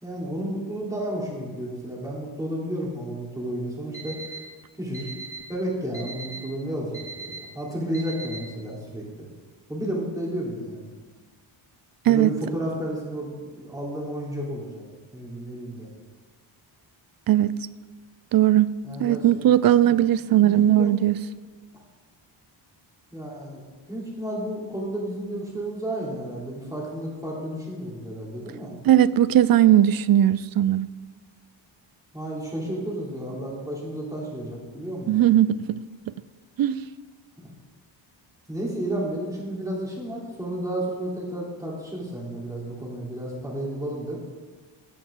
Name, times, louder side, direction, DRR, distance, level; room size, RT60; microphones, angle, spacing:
voice 1, 0.0-4.2 4.8-5.1 5.5-9.2 9.7-10.9 12.1-14.9 15.1-15.9 18.8-19.4 20.4-20.9 23.1-23.6 23.9-28.7 32.1-35.2 37.4-37.5 38.5-44.2, right 1 dB, 5° right, 3.4 m, -32 dB
Alarm, 3.9-4.4 4.9-5.4 5.9-6.4 6.9-7.4 7.9-8.4, right 3 dB, 15° left, 2.4 m, -37 dB
voice 2, 18.3-18.7 19.0-21.2 28.9-30.9 35.1-35.8 36.6-36.8, right 12 dB, 50° right, 0.5 m, -18 dB
15.5 x 9.0 x 3.8 m
cardioid pair, 120°, 48 cm